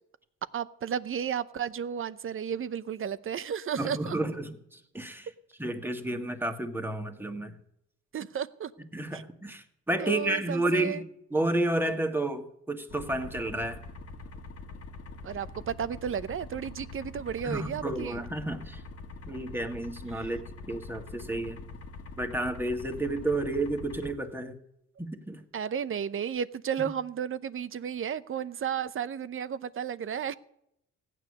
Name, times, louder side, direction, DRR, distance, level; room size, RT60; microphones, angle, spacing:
voice 1, 0.5-4.2 8.1-8.7 9.1-9.2 10.0-11.0 15.2-18.2 20.1-20.3 25.5-30.3, right 8 dB, 45° right, 15 dB, 0.8 m, -33 dB
voice 2, 3.8-5.3 5.6-7.6 8.9-11.1 11.3-13.8 17.4-18.8 19.3-21.6 22.2-24.6 25.0-25.4 26.8-26.9, right 1 dB, 5° right, 5 dB, 1.7 m, -31 dB
sound 1, 12.9-24.1, left 3 dB, 55° left, 1.7 m, -44 dB
15.5 x 9.3 x 6.5 m, 0.78 s
cardioid pair, 90°, 30 cm